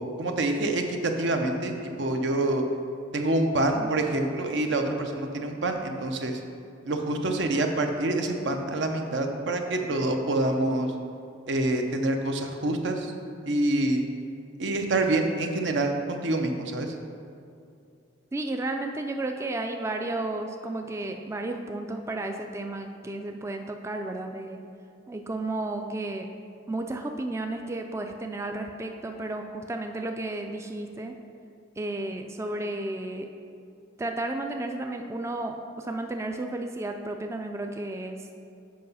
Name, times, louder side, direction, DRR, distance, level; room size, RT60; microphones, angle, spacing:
voice 1, 0.0-1.7 2.0-2.6 3.1-6.4 6.8-10.9 11.5-13.1 13.4-14.0 14.6-16.9, right 2 dB, 80° right, 4 dB, 0.7 m, -26 dB
voice 2, 18.3-24.6 25.1-26.3 26.7-31.1 31.8-33.3 34.0-38.3, right 2 dB, 15° right, 4 dB, 0.3 m, -33 dB
7.6 x 4.8 x 5.5 m, 2.5 s
head